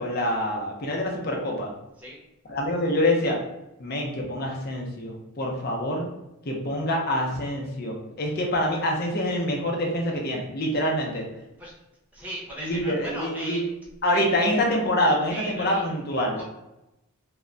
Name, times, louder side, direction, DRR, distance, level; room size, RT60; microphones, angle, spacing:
voice 1, 0.0-1.7 2.5-3.4 3.8-6.1 6.5-11.2 12.6-13.6 14.0-16.4, left 1 dB, 45° left, 0 dB, 0.6 m, -26 dB
voice 2, 12.1-13.6 14.1-14.2 15.3-15.8 16.4-16.5, equal, 5° right, -5 dB, 0.7 m, -36 dB
2.2 x 2.2 x 3.7 m, 0.92 s
head